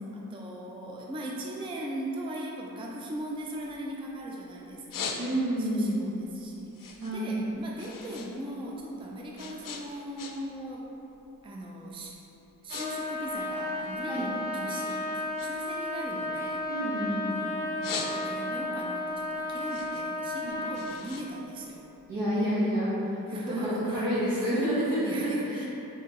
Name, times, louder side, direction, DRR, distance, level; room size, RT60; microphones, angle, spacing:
voice 1, 0.0-5.2 5.6-10.9 11.4-12.2 12.6-15.1 15.4-16.6 17.3-21.8 23.3-24.1 24.3-25.7, right 1 dB, 15° right, -2 dB, 0.4 m, -39 dB
sound 1, 3.2-4.3 4.6-5.7 6.1-8.3 8.6-10.6 10.9-11.3 11.9-12.0 12.4-12.9 13.1-14.4 14.9-17.2 17.6-18.6 19.0-22.2, left 5 dB, 65° left, 0.5 m, -41 dB
voice 2, 5.2-6.0 7.0-7.4 14.1-14.2 16.7-17.2 20.4-20.5 22.1-25.7, equal, 70° right, -9 dB, 1.4 m, -29 dB
Trumpet, 12.7-20.9, left 2 dB, 25° left, 0.8 m, -33 dB
4.3 x 2.9 x 3.6 m, 3.0 s
wide cardioid pair, 80°, 35 cm